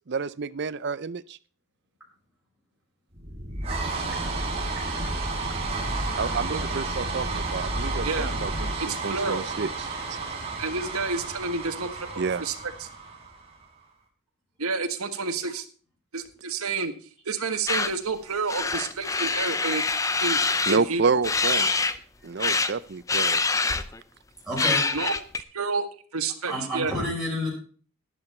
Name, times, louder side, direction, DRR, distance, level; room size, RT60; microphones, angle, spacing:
voice 1, 0.0-1.4 6.2-10.2 12.2-12.5 20.7-21.7 22.2-23.4, right 4 dB, 50° right, 16 dB, 0.5 m, -29 dB
sound 1, 3.1-13.6, right 2 dB, 25° right, 2.5 m, -31 dB
voice 2, 8.0-8.3 8.8-9.4 10.6-12.9 14.6-15.6 16.1-16.9 17.2-19.8 20.2-20.4 20.7-21.0 24.9-25.1 25.5-25.8 26.1-26.9, right 4 dB, 85° right, 8 dB, 1.5 m, -29 dB
sound 2, 17.7-17.9 18.5-20.8 21.2-22.0 22.4-22.7 23.1-24.0 24.6-25.4, left 4 dB, 15° left, 0.5 m, -25 dB
voice 3, 24.5-24.9 26.5-27.5, left 1 dB, ahead, -7 dB, 5.7 m, -29 dB
11.0 x 11.0 x 4.4 m, 0.42 s
head